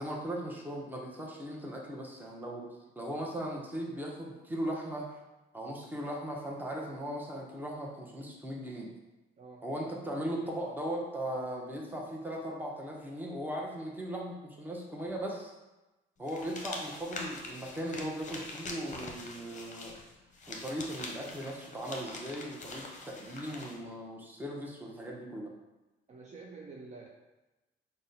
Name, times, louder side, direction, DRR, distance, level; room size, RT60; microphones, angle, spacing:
voice 1, 0.0-2.7 3.0-5.2 5.5-8.9 9.6-15.5 16.2-19.9 20.5-25.5, equal, 10° right, -2 dB, 0.8 m, -38 dB
voice 2, 9.4-9.7 26.1-27.1, right 4 dB, 35° right, -1 dB, 0.4 m, -48 dB
sound 1, 16.3-23.8, left 2 dB, 40° left, 0.7 m, -44 dB
3.9 x 2.2 x 3.9 m, 1.1 s
cardioid pair, 90°, 20 cm